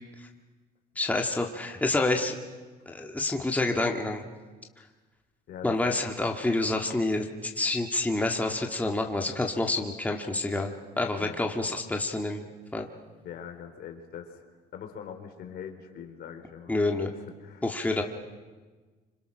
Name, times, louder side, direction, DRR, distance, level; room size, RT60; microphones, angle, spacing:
voice 1, 1.0-2.3 2.9-4.2 5.6-12.4 12.7-12.9 16.7-17.1 17.6-18.0, left 2 dB, 10° left, 2 dB, 1.9 m, -28 dB
voice 2, 11.2-11.5 13.2-14.4 14.7-17.7, left 8 dB, 70° left, 5 dB, 3.4 m, -43 dB
29.0 x 26.0 x 6.4 m, 1.3 s
cardioid pair, 110°, 17 cm